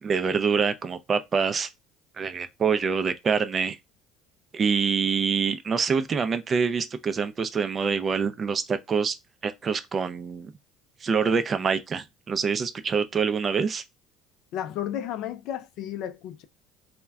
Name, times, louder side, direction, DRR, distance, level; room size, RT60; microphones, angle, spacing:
voice 1, 0.0-1.7 2.2-3.8 4.5-9.1 9.4-10.5 11.0-13.8, right 5 dB, 35° right, 0.4 m, -25 dB
voice 2, 14.5-16.4, left 11 dB, 65° left, 0.3 m, -33 dB
2.2 x 2.1 x 3.5 m
supercardioid pair, 100°, 0 cm